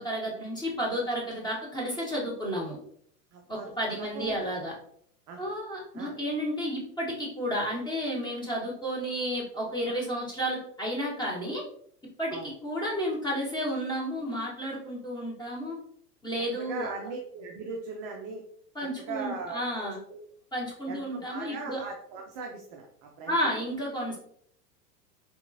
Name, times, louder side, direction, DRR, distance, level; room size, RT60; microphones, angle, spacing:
voice 1, 0.0-2.8 3.5-4.7 5.4-11.6 12.2-15.8 16.2-16.9 18.7-20.0 20.5-21.8 23.3-24.2, equal, 10° left, -4 dB, 1.3 m, -32 dB
voice 2, 3.3-4.5 5.3-5.5 5.9-6.1 12.3-12.5 16.6-18.4 19.1-20.2 20.9-23.4, right 4 dB, 30° right, 1 dB, 0.4 m, -39 dB
3.8 x 2.9 x 2.6 m, 0.64 s
hypercardioid pair, 95°, 50 cm